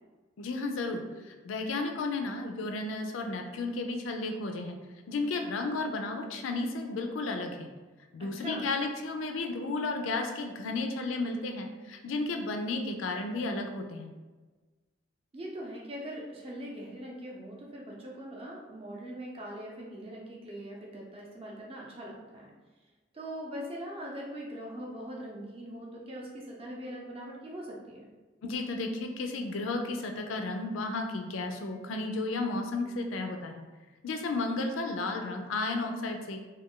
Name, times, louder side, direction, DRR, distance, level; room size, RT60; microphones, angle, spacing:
voice 1, 0.4-4.8 5.1-7.7 8.1-14.1 28.4-33.6 34.0-36.4, left 3 dB, 85° left, 4 dB, 0.4 m, -33 dB
voice 2, 8.2-8.6 15.3-22.5 23.1-28.1, equal, 30° right, -3 dB, 0.5 m, -41 dB
2.4 x 2.2 x 3.6 m, 1.3 s
head